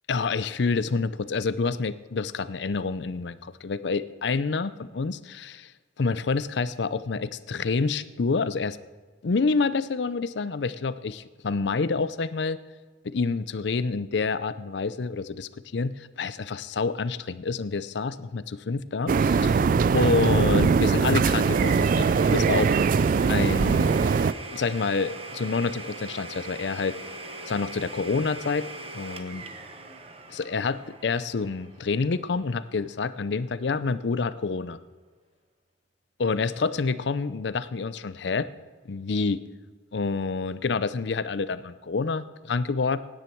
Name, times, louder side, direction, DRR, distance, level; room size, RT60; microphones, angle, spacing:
voice 1, 0.1-5.7 6.0-8.8 9.2-12.6 13.0-19.6 19.9-22.8 23.3-24.0 24.5-27.0 27.5-28.7 28.9-29.4 30.3-34.8 36.2-38.5 38.9-39.4 39.9-43.0, left 4 dB, 70° left, 15 dB, 0.5 m, -28 dB
sound 1, 19.1-24.3, right 5 dB, 45° right, 0.3 m, -21 dB
Domestic sounds home sounds, 21.3-32.9, right 3 dB, 30° right, 1.0 m, -41 dB
17.0 x 9.9 x 4.5 m, 1.4 s
head